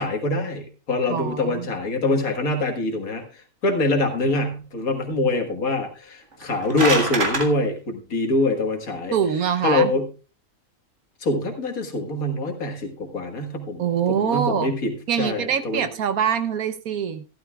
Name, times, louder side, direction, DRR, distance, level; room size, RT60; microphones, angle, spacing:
voice 1, 0.0-9.1 9.6-10.1 11.2-13.8 14.1-15.8, left 2 dB, 70° left, 4 dB, 2.1 m, -24 dB
voice 2, 1.1-1.7 9.1-9.9 13.8-14.8 15.1-17.3, right 8 dB, 75° right, 11 dB, 1.4 m, -24 dB
sound 1, 6.3-7.5, right 3 dB, 55° right, 2.1 m, -24 dB
14.5 x 12.5 x 2.4 m, 0.33 s
omnidirectional pair, 1.5 m